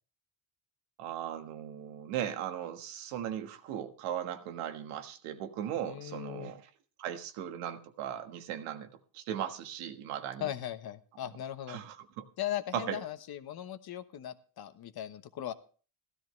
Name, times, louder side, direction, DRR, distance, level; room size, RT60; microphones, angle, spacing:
voice 1, 1.0-6.7 7.0-10.5 11.7-12.2 12.7-13.0, right 10 dB, 90° right, 1.5 m, -38 dB
voice 2, 5.8-6.5 10.4-11.8 12.4-15.5, left 12 dB, 50° left, 1.1 m, -38 dB
15.5 x 13.0 x 3.2 m
cardioid pair, 125°, 49 cm